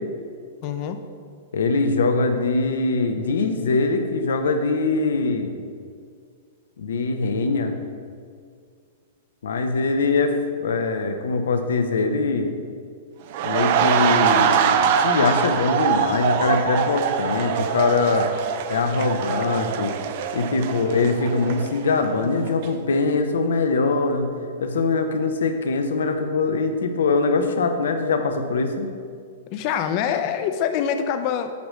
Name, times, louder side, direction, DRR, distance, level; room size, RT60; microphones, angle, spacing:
voice 1, 0.6-1.0 29.5-31.5, left 8 dB, 45° left, 8 dB, 0.6 m, -25 dB
voice 2, 1.5-5.6 6.8-7.7 9.4-12.6 13.4-18.3 18.7-20.0 20.3-24.3 24.6-28.9, left 3 dB, 80° left, 6 dB, 0.8 m, -22 dB
sound 1, 13.3-22.2 22.5-22.7, right 7 dB, 55° right, 0.5 m, -23 dB
8.3 x 3.1 x 6.4 m, 2.1 s
hypercardioid pair, 120°, 0 cm